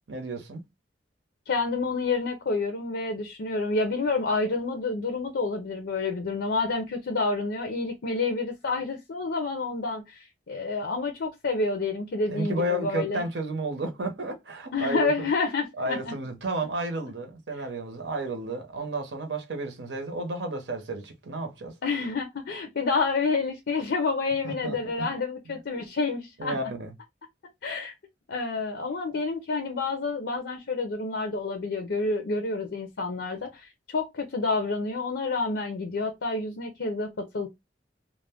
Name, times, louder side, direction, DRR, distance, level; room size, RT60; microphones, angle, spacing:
voice 1, 0.1-0.6 12.3-15.3 15.8-21.7 24.4-24.8 26.4-26.9, right 2 dB, 75° right, 0.7 m, -32 dB
voice 2, 1.5-13.3 14.7-16.1 21.8-26.6 27.6-27.9 28.3-37.5, left 3 dB, 75° left, 0.5 m, -29 dB
2.4 x 2.1 x 3.4 m
head